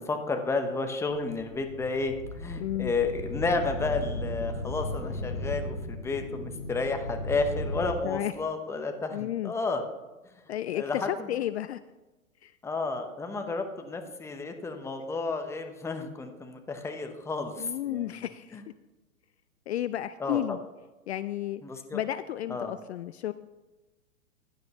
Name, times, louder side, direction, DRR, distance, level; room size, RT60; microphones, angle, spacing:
voice 1, 0.0-9.8 10.7-11.3 12.6-18.3 18.5-18.6 20.2-20.6 21.6-22.0 22.5-22.7, left 3 dB, 5° left, 6 dB, 0.8 m, -32 dB
sound 1, 1.1-7.9, left 1 dB, 90° left, 2.1 m, -36 dB
voice 2, 2.6-2.9 8.0-8.3 9.1-9.5 10.5-11.8 12.4-12.5 17.6-18.6 19.7-20.6 21.1-21.6 21.9-23.3, left 12 dB, 55° left, 14 dB, 0.5 m, -32 dB
15.0 x 10.5 x 3.0 m, 1.1 s
hypercardioid pair, 115°, 41 cm